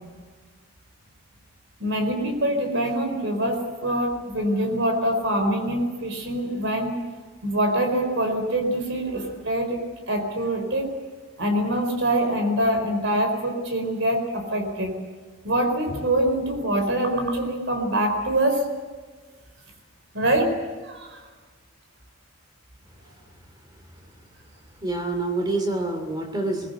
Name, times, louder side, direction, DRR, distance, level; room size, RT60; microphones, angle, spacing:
voice 1, 1.8-6.9 7.4-9.8 10.1-10.9 11.4-15.0 15.4-18.6 20.1-20.6 20.8-21.2, right 1 dB, 60° right, 5 dB, 4.5 m, -24 dB
voice 2, 24.8-26.7, right 2 dB, 20° right, 6 dB, 2.9 m, -26 dB
22.5 x 21.5 x 8.0 m, 1.4 s
head